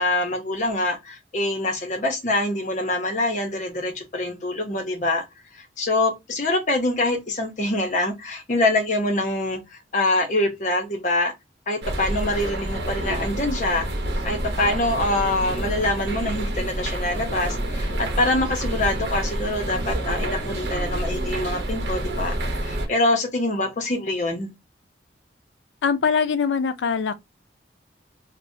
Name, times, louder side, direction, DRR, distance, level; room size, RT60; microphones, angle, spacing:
voice 1, 0.0-5.2 5.5-11.3 11.7-13.9 14.2-22.3 22.6-24.5, left 2 dB, 45° left, 0.7 m, -25 dB
sound 1, 11.8-22.9, right 1 dB, 70° right, 0.7 m, -28 dB
voice 2, 25.8-27.1, left 6 dB, 85° left, 0.4 m, -22 dB
3.0 x 2.0 x 2.6 m
head